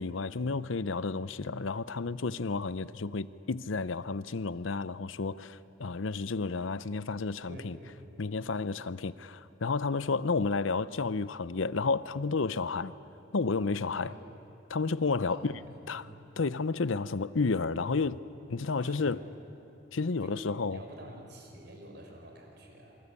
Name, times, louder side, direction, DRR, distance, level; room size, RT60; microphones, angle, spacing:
voice 1, 0.0-7.8 8.2-12.9 13.3-14.1 14.7-15.5 15.9-16.1 16.4-18.2 18.5-19.2 19.9-20.8, left 4 dB, 75° left, 0.7 m, -31 dB
voice 2, 7.5-8.2 14.0-14.2 15.3-15.6 15.9-16.2 18.8-19.3 20.2-23.0, right 1 dB, 55° right, 5.1 m, -48 dB
27.5 x 25.0 x 8.4 m
head